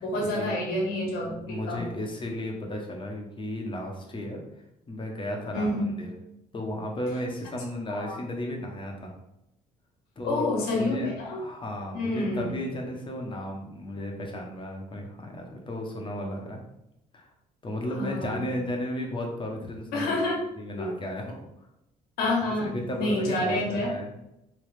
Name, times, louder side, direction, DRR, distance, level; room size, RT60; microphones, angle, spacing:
voice 1, 0.0-1.8 5.5-5.8 7.9-8.2 10.2-11.4 11.9-12.5 17.9-18.4 19.9-20.4 20.8-20.9 22.2-23.9, left 1 dB, 75° left, -1 dB, 1.3 m, -28 dB
voice 2, 1.5-4.4 4.9-6.1 6.5-9.1 10.2-10.4 10.7-11.1 11.4-16.6 17.1-17.3 17.6-20.2 20.6-21.5 22.6-24.1, left 1 dB, 35° left, 1 dB, 1.0 m, -34 dB
3.3 x 3.2 x 3.3 m, 0.84 s
supercardioid pair, 80°, 16 cm